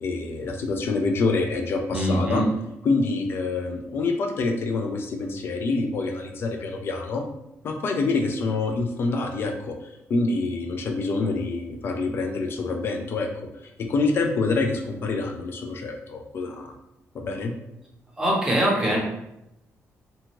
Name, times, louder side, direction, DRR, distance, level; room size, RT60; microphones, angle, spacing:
voice 1, 0.0-2.4 2.8-7.2 7.6-13.3 13.8-16.7 17.1-17.5, left 3 dB, 45° left, 3 dB, 0.4 m, -26 dB
voice 2, 1.9-2.5 18.2-19.0, equal, 10° right, -4 dB, 0.7 m, -22 dB
2.7 x 2.3 x 3.0 m, 0.88 s
cardioid pair, 160°, 5 cm